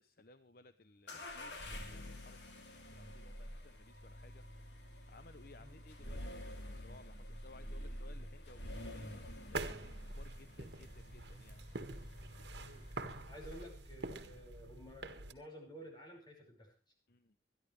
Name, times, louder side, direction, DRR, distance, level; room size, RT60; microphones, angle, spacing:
voice 1, 0.0-4.4 5.1-11.6 17.1-17.4, left 3 dB, 55° left, 11 dB, 0.7 m, -61 dB
sound 1, 1.1-13.9, left 1 dB, 80° left, 2.9 m, -48 dB
sound 2, 8.7-15.3, right 2 dB, 75° right, 1.7 m, -46 dB
voice 2, 13.3-16.7, equal, 25° left, 1 dB, 5.4 m, -53 dB
25.5 x 11.0 x 3.3 m, 0.32 s
head